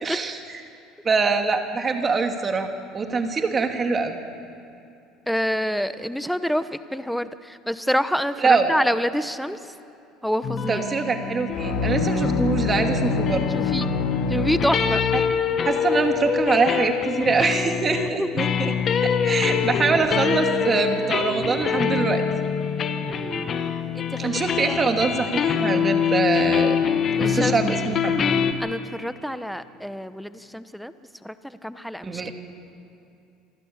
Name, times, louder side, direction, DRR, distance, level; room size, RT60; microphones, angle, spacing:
voice 1, 0.0-0.4 1.0-2.7 2.9-4.2 8.4-8.7 10.7-13.6 15.6-18.7 19.0-22.2 24.2-26.8 27.2-28.3 32.0-32.3, right 4 dB, 30° right, 5 dB, 2.4 m, -24 dB
voice 2, 5.3-9.7 10.2-10.8 13.5-13.9 14.3-15.0 18.2-18.3 23.1-23.5 23.9-24.4 24.7-24.8 27.1-27.6 28.6-30.9 31.2-32.3, equal, ahead, 12 dB, 0.9 m, -27 dB
sound 1, 10.4-28.5, left 7 dB, 45° left, 1.5 m, -25 dB
sound 2, 11.5-15.4, left 3 dB, 80° left, 2.2 m, -26 dB
26.5 x 12.0 x 8.8 m, 2.7 s
supercardioid pair, 100°, 0 cm